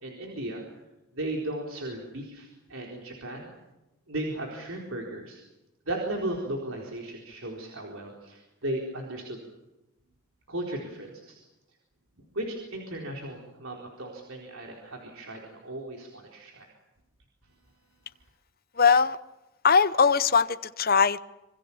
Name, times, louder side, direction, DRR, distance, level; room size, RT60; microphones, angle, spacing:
voice 1, 0.0-0.7 1.1-3.5 4.1-5.4 5.9-9.4 10.5-11.4 12.3-16.7, right 1 dB, 65° right, 0 dB, 4.2 m, -36 dB
voice 2, 18.8-19.2 19.6-21.2, left 5 dB, 40° left, 13 dB, 0.8 m, -21 dB
26.5 x 24.5 x 7.1 m, 0.99 s
head